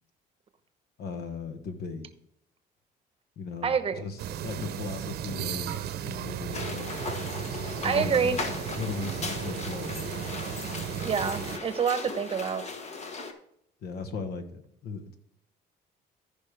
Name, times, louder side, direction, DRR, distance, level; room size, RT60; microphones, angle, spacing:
voice 1, 1.0-2.1 3.4-5.7 6.0-7.0 7.8-10.0 13.8-15.1, left 4 dB, 70° left, 8 dB, 1.3 m, -37 dB
voice 2, 3.6-4.1 7.8-8.4 11.0-12.6, right 6 dB, 35° right, 11 dB, 0.9 m, -27 dB
sound 1, 4.2-11.6, right 10 dB, 70° right, 0.8 m, -35 dB
sound 2, 6.5-13.3, left 4 dB, 40° left, 1.2 m, -37 dB
14.0 x 5.3 x 3.4 m, 0.74 s
cardioid pair, 110°, 17 cm